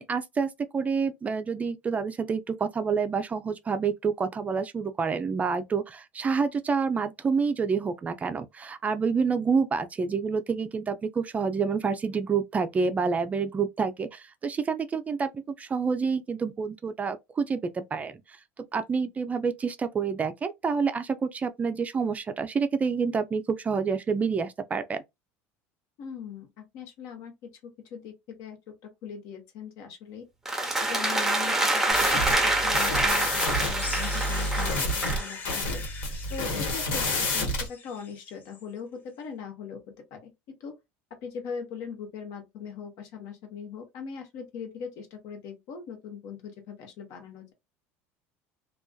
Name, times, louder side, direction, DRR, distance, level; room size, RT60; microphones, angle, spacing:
voice 1, 0.1-15.3 15.6-18.2 18.6-25.0, right 5 dB, 25° right, 0.3 m, -28 dB
voice 2, 26.0-30.2 30.8-35.8 36.3-40.3 40.6-40.7 41.2-47.5, left 6 dB, 65° left, 0.9 m, -40 dB
sound 1, 30.5-35.3, right 2 dB, 5° right, 0.7 m, -26 dB
sound 2, 31.9-37.7, left 1 dB, 90° left, 1.2 m, -29 dB
sound 3, 33.8-38.6, left 4 dB, 30° left, 0.6 m, -41 dB
2.4 x 2.2 x 2.2 m
supercardioid pair, 110°, 6 cm